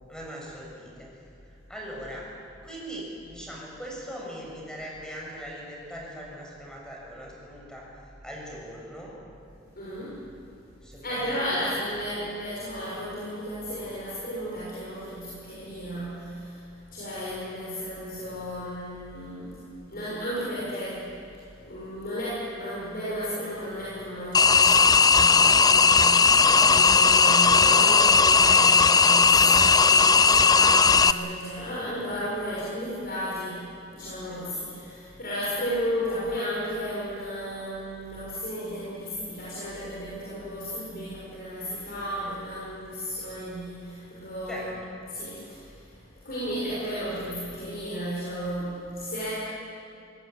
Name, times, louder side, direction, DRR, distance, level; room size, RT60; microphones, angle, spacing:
voice 1, 0.1-1.1 1.7-2.3 2.6-7.9 8.2-9.1 10.8-11.7 26.5-26.8 32.5-32.6 34.3-34.5 44.5-44.7, equal, 5° left, -3 dB, 6.4 m, -40 dB
voice 2, 9.7-10.2 11.0-19.6 19.9-21.2 21.6-44.8 45.1-49.3, equal, 50° left, -8 dB, 6.6 m, -33 dB
sound 1, 24.3-31.1, left 5 dB, 20° left, 0.5 m, -17 dB
23.5 x 18.5 x 9.2 m, 2.5 s
head